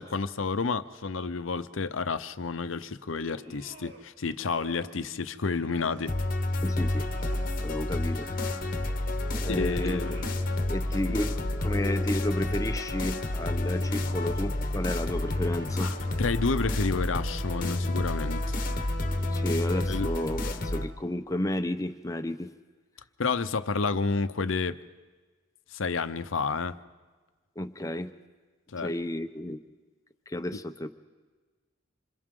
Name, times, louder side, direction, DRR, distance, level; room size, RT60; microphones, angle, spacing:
voice 1, 0.0-6.1 9.5-10.2 11.0-11.2 14.2-14.3 15.7-18.6 19.9-20.1 23.2-24.8 25.7-26.8 28.7-28.9, left 4 dB, 85° left, 12 dB, 0.8 m, -30 dB
sound 1, 3.1-4.0 4.3-5.0 5.4-6.3 6.7-8.8 9.2-10.6 11.3-12.1 12.5-13.2 13.7-14.3 14.8-17.0, right 2 dB, 60° right, 3.1 m, -51 dB
sound 2, 6.1-20.9, left 1 dB, 45° left, 1.1 m, -29 dB
voice 2, 6.6-7.1 7.6-8.3 9.3-10.2 10.7-15.9 19.2-22.5 27.6-28.1 28.8-29.6 30.3-30.9, left 1 dB, 15° left, 8 dB, 0.7 m, -32 dB
27.0 x 27.0 x 3.8 m, 1.4 s
head